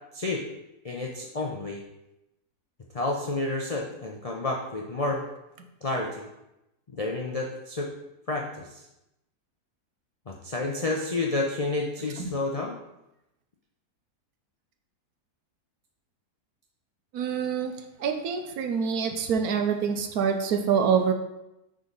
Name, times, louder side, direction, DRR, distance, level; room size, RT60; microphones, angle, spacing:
voice 1, 0.8-1.8 2.9-5.2 5.8-6.3 6.9-7.9 8.3-8.8 10.3-12.8, left 2 dB, 60° left, -1 dB, 0.3 m, -30 dB
voice 2, 17.1-17.7 18.0-21.1, right 6 dB, 75° right, 5 dB, 1.2 m, -26 dB
6.3 x 3.8 x 5.3 m, 0.90 s
omnidirectional pair, 1.6 m